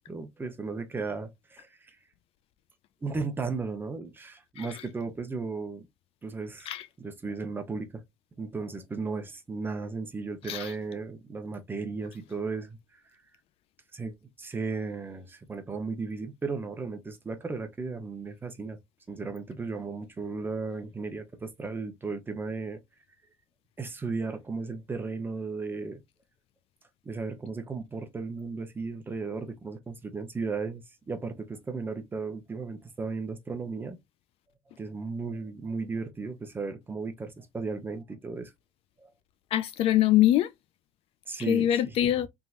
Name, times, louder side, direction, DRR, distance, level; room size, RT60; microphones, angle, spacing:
voice 1, 0.0-2.0 3.0-5.9 6.2-6.7 7.0-8.0 8.4-13.0 13.9-18.8 19.1-22.8 23.8-26.0 27.0-34.0 34.8-38.5 39.0-39.1 41.3-41.8, right 4 dB, 20° right, 1.0 m, -35 dB
voice 2, 10.4-10.7 39.5-40.5 41.4-42.3, left 12 dB, 60° left, 0.4 m, -24 dB
3.6 x 2.9 x 2.5 m
cardioid pair, 135°, 11 cm